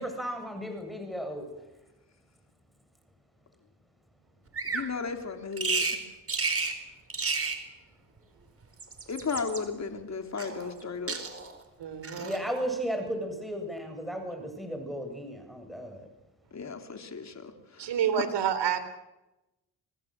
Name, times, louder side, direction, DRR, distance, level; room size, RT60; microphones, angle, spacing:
voice 1, 0.0-1.5 12.2-16.1, equal, ahead, 5 dB, 7.4 m, -35 dB
Bird vocalization bird call bird song, 4.5-4.9 5.6-6.0 6.3-6.8 7.1-7.6 8.6-9.6 10.4-10.8 11.1-11.6 12.0-12.4, right 4 dB, 30° right, 4.5 m, -31 dB
voice 2, 4.6-6.0 9.1-11.2 16.5-18.2, left 5 dB, 35° left, 5 dB, 3.7 m, -35 dB
voice 3, 11.8-12.3 17.8-18.8, right 8 dB, 65° right, 11 dB, 3.9 m, -28 dB
27.5 x 20.0 x 7.8 m, 0.98 s
supercardioid pair, 75°, 45 cm